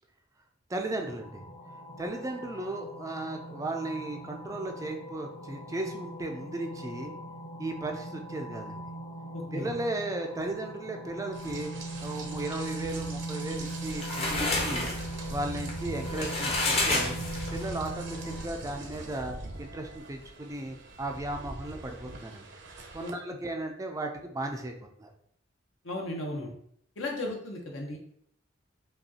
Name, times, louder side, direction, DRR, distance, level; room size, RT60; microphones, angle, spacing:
voice 1, 0.7-1.4 2.0-7.1 7.6-8.8 9.5-11.7 12.0-14.9 15.3-17.1 17.5-22.5 22.9-24.7 25.0-25.1, right 2 dB, 15° right, 3 dB, 0.4 m, -35 dB
sound 1, 0.8-18.4, right 1 dB, 55° left, 1.2 m, -40 dB
voice 2, 9.3-9.7 23.0-23.1 25.8-26.5 27.0-28.0, left 1 dB, 75° left, 0 dB, 1.0 m, -35 dB
Rain, 11.3-23.1, right 2 dB, 65° right, 0.7 m, -42 dB
sound 2, 13.6-17.8, left 2 dB, 30° left, 0.7 m, -30 dB
5.2 x 2.4 x 2.8 m, 0.68 s
head